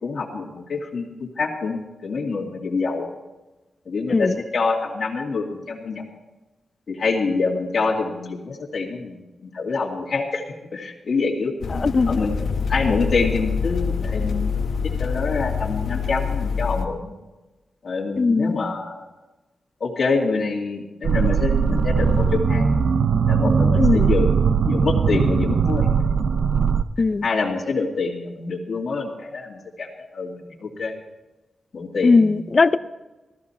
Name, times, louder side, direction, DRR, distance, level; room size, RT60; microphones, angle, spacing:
voice 1, 0.0-3.1 3.9-6.0 6.9-10.4 10.7-11.5 12.1-12.3 12.7-14.5 15.0-17.1 17.8-19.0 19.8-22.7 23.3-24.3 24.7-26.0 27.2-31.0 31.7-32.3, left 4 dB, 60° left, -1 dB, 2.1 m, -26 dB
sound 1, 11.6-16.9, left 5 dB, 90° left, 1.3 m, -25 dB
voice 2, 11.7-12.2 18.2-18.6 23.8-24.1 27.0-27.2 32.0-32.8, left 4 dB, 40° left, 13 dB, 0.5 m, -18 dB
sound 2, 21.0-26.8, right 6 dB, 60° right, 0.5 m, -19 dB
15.5 x 13.5 x 4.3 m, 1.1 s
wide cardioid pair, 130°, 0 cm